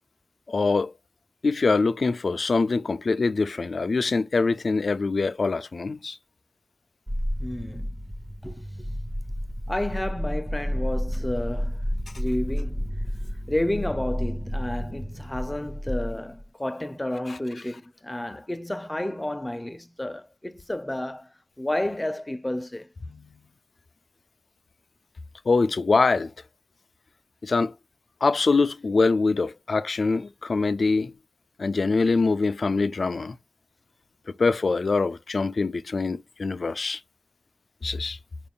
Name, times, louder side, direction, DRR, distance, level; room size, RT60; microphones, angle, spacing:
voice 1, 0.5-0.9 1.4-6.2 17.3-17.4 23.1-23.4 25.5-26.3 27.4-27.7 28.2-31.1 31.6-33.4 34.4-37.0 37.8-38.2, left 4 dB, 85° left, 0.3 m, -24 dB
sound 1, 7.1-16.4, equal, 35° right, 0.9 m, -31 dB
voice 2, 7.4-7.9 8.4-8.9 9.7-11.8 12.2-12.9 13.5-22.9, left 1 dB, 20° left, 0.5 m, -31 dB
4.5 x 2.3 x 3.6 m
wide cardioid pair, 55°, 0 cm